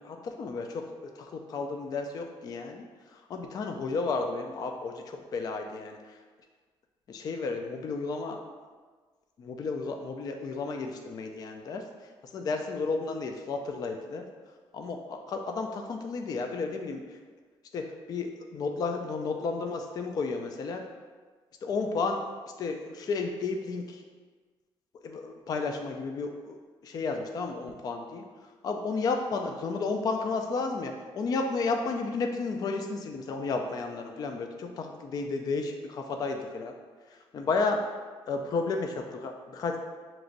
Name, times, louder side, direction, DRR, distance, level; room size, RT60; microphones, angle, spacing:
voice 1, 0.0-6.2 7.1-8.4 9.4-14.3 14.7-17.2 17.7-20.8 21.6-22.3 22.6-24.0 25.0-26.6 26.8-36.7 37.1-38.0 38.3-39.8, left 4 dB, 40° left, 3 dB, 0.3 m, -32 dB
6.2 x 3.0 x 2.5 m, 1.4 s
cardioid pair, 140°, 10 cm